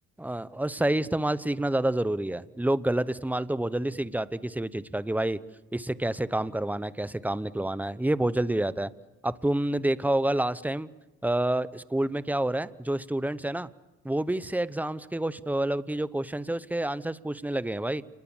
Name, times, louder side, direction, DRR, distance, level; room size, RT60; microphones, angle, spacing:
voice 1, 0.2-5.4 5.7-8.9 9.2-10.9 11.2-13.7 14.0-18.0, right 1 dB, 5° right, 16 dB, 0.9 m, -28 dB
28.0 x 21.5 x 7.2 m, 1.1 s
cardioid pair, 90°, 30 cm